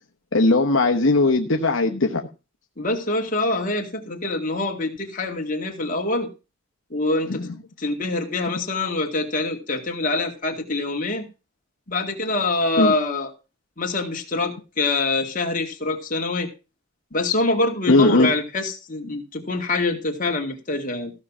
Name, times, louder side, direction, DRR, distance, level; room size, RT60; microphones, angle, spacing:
voice 1, 0.3-2.3 7.3-7.5 12.8-12.9 17.9-18.3, left 2 dB, 70° left, 3 dB, 1.1 m, -18 dB
voice 2, 2.8-6.3 6.9-7.5 7.8-11.2 11.9-13.3 13.8-16.5 17.1-21.1, left 2 dB, 40° left, 2 dB, 2.3 m, -25 dB
15.5 x 5.7 x 6.2 m, 0.31 s
head